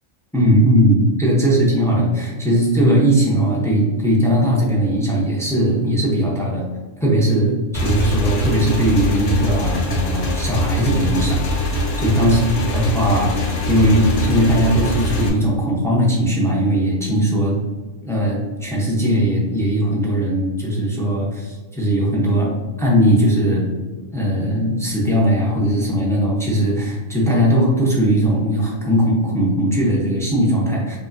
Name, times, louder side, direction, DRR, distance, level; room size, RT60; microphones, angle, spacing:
voice 1, 0.3-6.6 7.0-12.4 12.7-17.5 18.0-22.5 22.8-23.6 24.1-31.0, equal, 5° left, -4 dB, 0.5 m, -18 dB
Motorcycle / Engine, 7.7-15.3, left 1 dB, 60° left, 0.9 m, -23 dB
4.9 x 2.7 x 2.6 m, 1.3 s
omnidirectional pair, 1.4 m